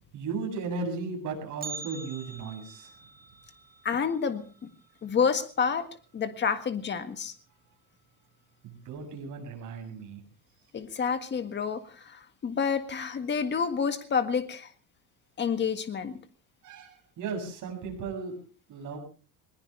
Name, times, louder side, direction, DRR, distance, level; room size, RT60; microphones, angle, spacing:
voice 1, 0.1-2.9 8.6-10.2 16.6-18.4 18.7-19.0, right 4 dB, 45° right, 2 dB, 7.7 m, -36 dB
Bell, 1.6-5.7 6.0-6.1 6.6-6.7 7.5-7.6 8.3-8.6 9.0-9.1, right 4 dB, 20° right, 1.8 m, -45 dB
voice 2, 3.8-4.7 5.0-5.9 6.1-7.3 10.7-14.7 15.4-16.2, left 6 dB, 25° left, 9 dB, 1.7 m, -29 dB
21.0 x 20.0 x 3.3 m, 0.38 s
cardioid pair, 165°, 42 cm